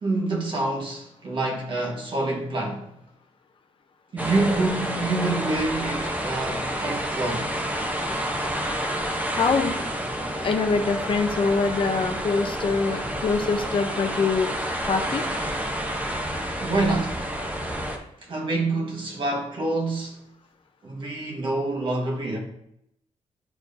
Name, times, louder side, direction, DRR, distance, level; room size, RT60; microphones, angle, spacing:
voice 1, 0.0-2.8 4.1-7.7 16.6-17.3 18.2-20.3 20.8-22.4, right 2 dB, 40° right, 1.5 m, -27 dB
sound 1, 4.2-18.0, equal, 10° right, 0.9 m, -29 dB
voice 2, 9.3-9.8 10.4-14.5 14.9-15.2, left 4 dB, 45° left, 0.6 m, -24 dB
10.5 x 4.6 x 2.7 m
wide cardioid pair, 170°, 13 cm